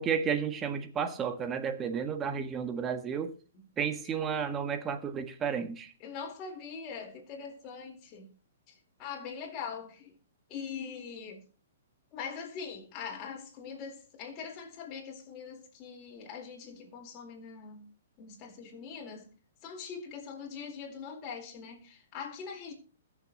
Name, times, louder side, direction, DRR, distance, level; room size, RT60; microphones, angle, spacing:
voice 1, 0.0-3.3 3.8-5.9, right 7 dB, 20° right, 1.5 m, -32 dB
voice 2, 6.0-8.3 8.7-10.1 10.5-11.4 12.1-17.8 18.2-19.3 19.6-22.7, left 6 dB, 30° left, 4.1 m, -42 dB
21.0 x 7.3 x 3.0 m
figure-of-eight pair, 120°, 0 cm